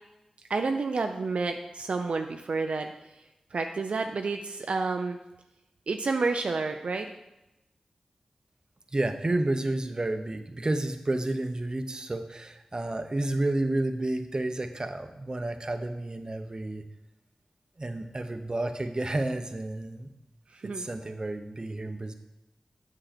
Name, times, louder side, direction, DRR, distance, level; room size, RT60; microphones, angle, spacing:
voice 1, 0.5-2.9 3.5-5.2 5.9-7.1 20.6-20.9, right 4 dB, 70° right, 5 dB, 0.5 m, -29 dB
voice 2, 8.9-16.8 17.8-20.1 20.6-22.1, right 2 dB, 40° right, 7 dB, 0.8 m, -31 dB
7.7 x 6.4 x 4.3 m, 0.94 s
cardioid pair, 40°, 2 cm